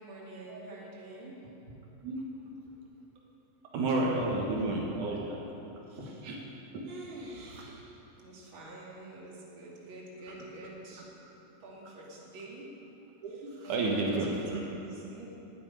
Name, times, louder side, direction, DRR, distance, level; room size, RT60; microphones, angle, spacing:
voice 1, 0.0-1.4 1.7-1.8 5.9-6.3 6.9-11.0 11.4-12.7 13.3-15.3, right 2 dB, 40° right, -4 dB, 3.0 m, -46 dB
voice 2, 3.7-5.4 6.2-6.3 10.3-10.4 13.2-14.6, right 2 dB, 75° right, -2 dB, 2.9 m, -31 dB
13.0 x 8.7 x 9.8 m, 3.0 s
omnidirectional pair, 3.5 m